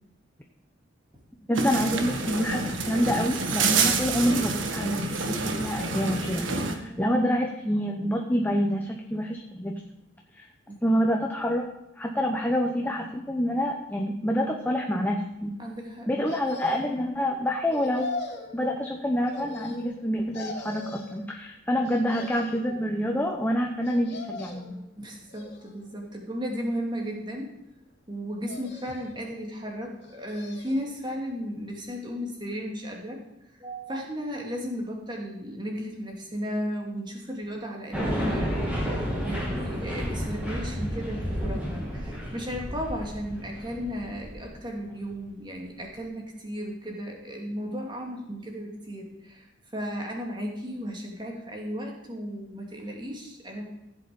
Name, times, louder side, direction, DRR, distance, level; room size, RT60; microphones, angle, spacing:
voice 1, 1.5-9.9 10.4-10.5 10.8-11.7 12.0-15.5 16.1-18.1 18.5-24.8, equal, 10° left, 1 dB, 0.9 m, -27 dB
sound 1, 1.5-6.8, right 4 dB, 80° right, 1.5 m, -28 dB
voice 2, 6.7-7.1 10.7-11.0 15.6-16.1 22.6-22.8 25.0-27.5 28.1-33.2 33.6-49.5 49.7-53.6, equal, 25° right, 0 dB, 2.6 m, -35 dB
sound 2, 16.2-17.1 17.7-18.5 19.2-20.0 20.3-21.2 21.8-22.6 23.8-24.8 25.3-26.0 26.6-27.4 28.4-29.2 30.0-30.9 31.3-31.4, left 2 dB, 60° left, 2.8 m, -40 dB
sound 3, 37.9-44.5, equal, 5° right, 3.0 m, -31 dB
15.0 x 7.9 x 5.3 m, 0.91 s
head